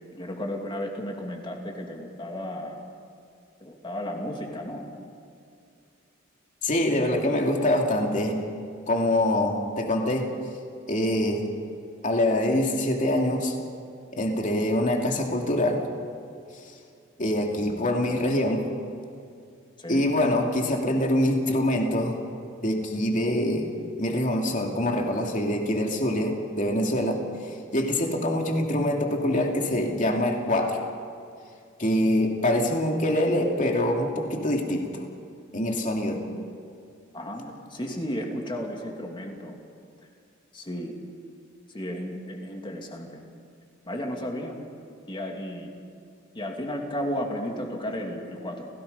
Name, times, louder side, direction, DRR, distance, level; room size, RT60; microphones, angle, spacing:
voice 1, 0.1-2.8 3.6-4.9 19.8-20.1 37.1-39.6 40.5-41.0 41.7-43.2 43.9-44.6 45.1-45.7 46.3-48.7, equal, 25° left, 1 dB, 2.8 m, -33 dB
voice 2, 6.6-8.4 8.9-10.3 10.9-11.5 12.0-13.5 14.2-15.9 17.2-18.6 19.9-22.2 22.6-23.7 24.0-27.2 27.7-30.8 31.8-35.0 35.5-36.2, left 1 dB, 40° left, 1 dB, 2.7 m, -24 dB
30.0 x 17.5 x 5.5 m, 2.4 s
head